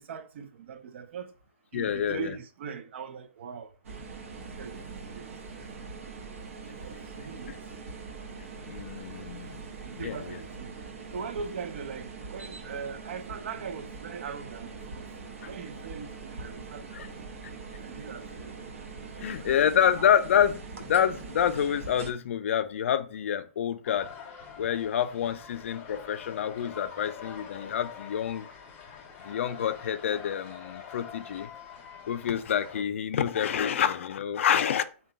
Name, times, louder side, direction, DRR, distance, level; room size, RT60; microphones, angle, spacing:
voice 1, 0.0-1.3 1.7-3.7 4.5-4.8 5.1-5.3 5.6-5.8 6.8-7.6 9.8-10.7 11.1-15.1 15.4-16.8 17.8-19.5 19.8-20.1, right 6 dB, 60° right, 0.4 m, -41 dB
voice 2, 1.7-2.3 7.2-7.3 8.6-9.6 9.9-10.3 15.4-15.5 16.9-17.1 19.2-24.1 24.6-28.5 29.2-31.5 32.1-34.8, left 9 dB, 70° left, 0.4 m, -27 dB
sound 1, 3.8-22.1, right 4 dB, 80° right, 0.8 m, -42 dB
sound 2, 23.8-32.8, left 7 dB, 20° left, 0.5 m, -45 dB
3.7 x 2.2 x 3.7 m
hypercardioid pair, 170°, 7 cm